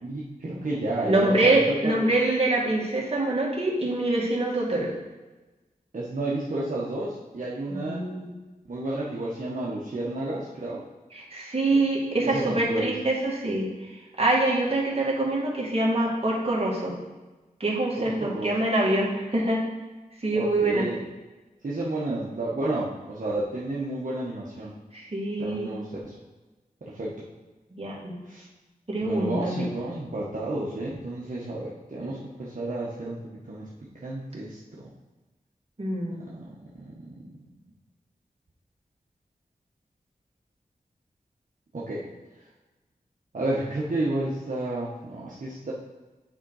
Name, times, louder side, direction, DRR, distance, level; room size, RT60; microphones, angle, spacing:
voice 1, 0.0-2.1 5.9-8.1 8.7-10.8 11.7-11.8 12.2-13.0 18.0-18.5 20.3-21.0 21.6-24.8 25.4-26.1 26.8-27.3 28.3-28.5 29.0-33.7 34.0-34.8 36.3-37.4 41.7-42.0 43.3-45.7, right 2 dB, 60° right, -6 dB, 1.2 m, -31 dB
voice 2, 1.0-4.9 7.7-8.3 11.1-13.7 14.2-16.9 17.6-19.6 20.2-20.9 24.9-25.7 27.8-28.1 28.9-29.7 35.8-36.2, right 2 dB, 40° right, -4 dB, 2.1 m, -25 dB
8.7 x 3.8 x 4.8 m, 1.2 s
wide cardioid pair, 60°, 15 cm